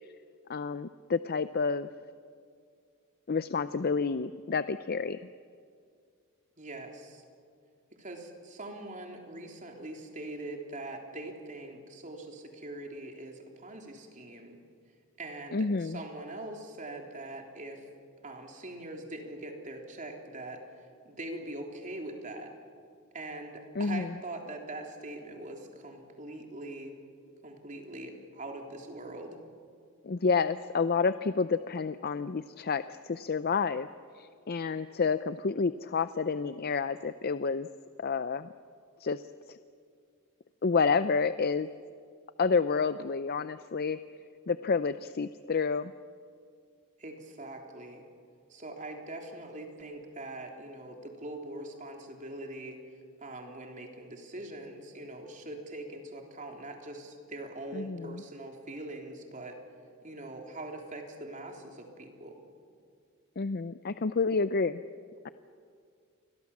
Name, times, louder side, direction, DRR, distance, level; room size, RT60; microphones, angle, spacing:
voice 1, 0.5-1.9 3.3-5.2 15.5-16.0 23.8-24.1 30.0-33.9 34.2-37.7 38.0-38.5 39.0-39.2 39.5-39.6 40.6-41.7 42.4-44.0 44.5-45.9 57.7-58.2 63.4-64.8 65.2-65.3, left 5 dB, 45° left, 13 dB, 0.5 m, -29 dB
voice 2, 6.6-7.2 8.0-14.6 15.2-17.8 18.2-22.5 23.1-26.9 27.4-29.4 47.0-48.0 48.5-52.8 53.2-59.6 60.0-62.4, right 1 dB, 35° right, 2 dB, 3.6 m, -42 dB
29.0 x 22.5 x 7.3 m, 2.3 s
head